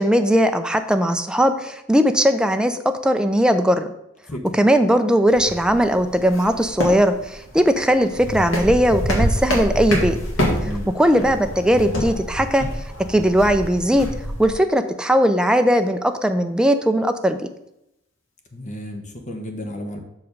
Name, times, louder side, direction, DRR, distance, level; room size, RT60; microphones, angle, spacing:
voice 1, 0.0-3.9 4.5-10.2 10.6-10.7 10.9-12.6 13.1-14.1 14.4-17.5, equal, 5° right, 7 dB, 0.5 m, -18 dB
sound 1, 5.3-14.5, equal, 80° left, 2.0 m, -27 dB
voice 2, 18.5-20.0, equal, 40° left, 4 dB, 1.1 m, -32 dB
6.3 x 4.9 x 5.2 m, 0.83 s
head